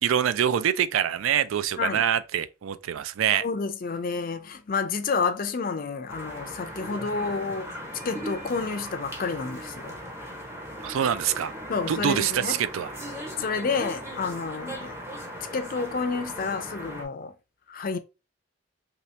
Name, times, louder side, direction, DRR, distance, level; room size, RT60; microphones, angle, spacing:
voice 1, 0.0-3.4 10.8-11.5 11.9-12.9, right 9 dB, 75° right, 0.3 m, -25 dB
voice 2, 3.3-7.7 8.0-10.0 11.7-12.6 13.4-15.0 15.5-17.3 17.7-18.0, left 4 dB, 45° left, 0.4 m, -30 dB
sound 1, 6.1-17.1, equal, 10° right, 0.7 m, -38 dB
2.9 x 2.8 x 3.2 m
head